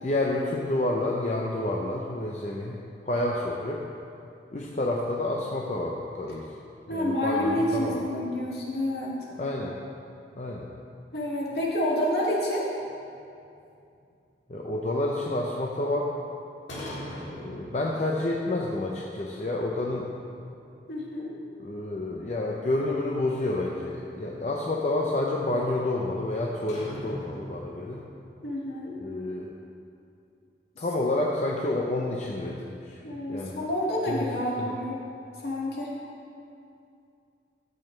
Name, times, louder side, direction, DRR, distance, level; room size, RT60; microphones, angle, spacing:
voice 1, 0.0-2.8 3.0-3.8 4.5-6.5 6.9-8.0 9.4-9.7 10.4-10.7 14.5-16.1 17.3-20.1 21.6-28.0 29.0-29.5 30.8-33.0 33.3-33.6 34.1-34.2 34.6-34.7, left 2 dB, 40° left, -2 dB, 0.6 m, -29 dB
voice 2, 6.9-9.2 11.1-12.7 20.9-21.3 28.4-29.0 30.8-30.9 33.0-35.0 35.4-35.9, left 1 dB, 65° left, -4 dB, 1.9 m, -28 dB
sound 1, 12.8-14.2 16.7-18.3 18.6-18.7 19.2-20.2 20.5-20.6 21.1-21.2 21.6-23.0 24.6-24.7 26.4-28.2, equal, 80° left, 1.7 m, -41 dB
13.0 x 8.0 x 3.2 m, 2.6 s
head